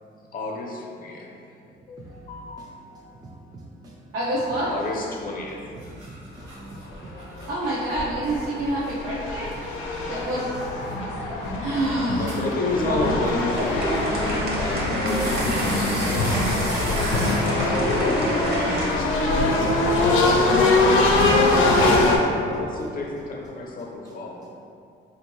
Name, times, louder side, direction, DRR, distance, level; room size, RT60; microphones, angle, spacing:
voice 1, 0.3-1.3 1.9-3.1 4.7-5.6 10.0-10.2 12.2-16.9 17.5-20.2 20.7-21.6 22.4-24.4, left 2 dB, 45° left, 0.6 m, -31 dB
voice 2, 4.1-4.7 7.5-9.5 10.1-10.6 11.6-12.2 12.8-13.1, right 1 dB, 90° right, 0.7 m, -27 dB
sound 1, 5.2-19.4, right 1 dB, 75° right, 1.1 m, -41 dB
voice 3, 6.4-6.9 7.2-7.3 10.9-11.7 20.3-20.4 21.5-22.4, right 2 dB, 20° right, 0.4 m, -44 dB
sound 2, 7.4-7.5 8.0-22.2, left 2 dB, 90° left, 0.5 m, -23 dB
sound 3, 13.2-18.9, right 1 dB, 55° right, 0.9 m, -30 dB
3.5 x 2.5 x 3.0 m
cardioid pair, 90°, 20 cm